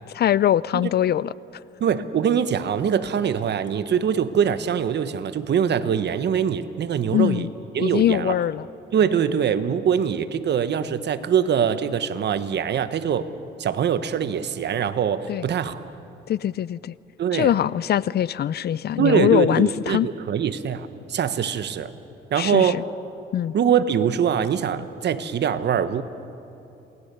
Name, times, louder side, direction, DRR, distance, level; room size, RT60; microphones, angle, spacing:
voice 1, 0.1-1.3 7.1-7.5 7.8-8.7 15.3-15.4 16.3-16.9 17.3-20.1 22.4-22.8 23.3-23.5, left 11 dB, 55° left, 20 dB, 0.5 m, -22 dB
voice 2, 1.8-7.5 7.7-8.3 8.9-13.3 13.6-15.8 17.2-17.5 19.0-21.9 22.3-22.8 23.5-26.0, right 8 dB, 60° right, 12 dB, 1.2 m, -23 dB
28.0 x 20.0 x 6.9 m, 2.9 s
cardioid pair, 90°, 20 cm